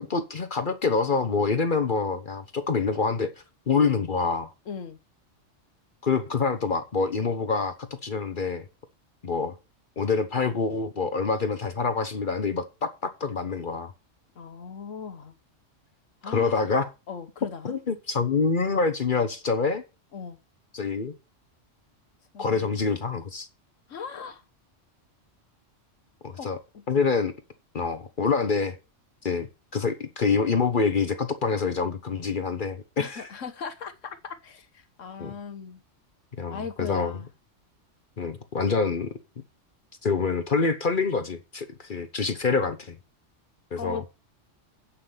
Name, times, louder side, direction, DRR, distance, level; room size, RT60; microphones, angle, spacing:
voice 1, 0.0-3.3 3.7-4.5 6.0-7.7 8.0-8.7 9.2-9.5 10.0-13.9 16.3-16.9 17.6-19.8 20.7-21.1 22.4-23.5 26.2-26.6 26.9-27.3 27.7-28.8 29.2-33.3 35.2-35.3 36.4-37.2 38.2-39.1 40.0-43.0 43.7-44.0, left 4 dB, 45° left, 1.0 m, -26 dB
voice 2, 4.7-5.0 14.4-15.3 16.2-16.6 17.1-17.7 20.1-20.4 22.3-22.7 23.9-24.4 26.3-26.5 26.7-26.8 33.0-35.8 36.5-37.3 43.8-44.1, left 5 dB, 85° left, 1.5 m, -38 dB
8.4 x 5.8 x 7.1 m
omnidirectional pair, 1.3 m